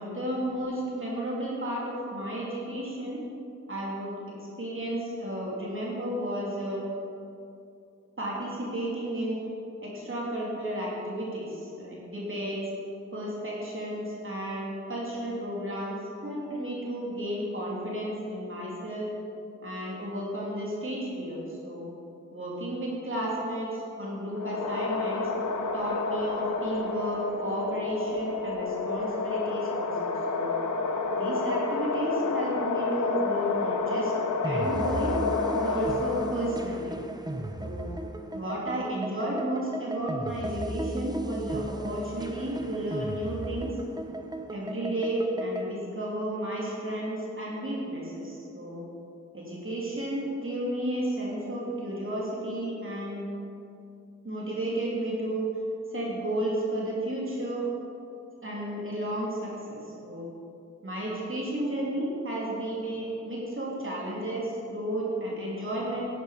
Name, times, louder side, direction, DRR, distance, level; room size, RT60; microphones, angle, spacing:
voice 1, 0.0-3.2 3.7-4.2 4.6-6.8 8.2-9.4 9.8-12.6 13.1-16.0 16.2-19.1 19.6-21.9 22.3-25.3 25.7-30.6 31.2-34.1 34.4-35.2 35.5-37.0 37.6-37.9 38.3-43.8 44.5-48.8 49.3-53.3 54.2-55.5 55.9-57.6 58.4-60.3 60.8-66.1, right 1 dB, 45° right, -5 dB, 3.1 m, -32 dB
sound 1, 24.3-36.8, left 3 dB, 85° left, 0.8 m, -30 dB
sound 2, 34.4-45.7, right 1 dB, 15° right, 1.0 m, -35 dB
11.5 x 9.8 x 5.1 m, 2.6 s
cardioid pair, 55°, 30 cm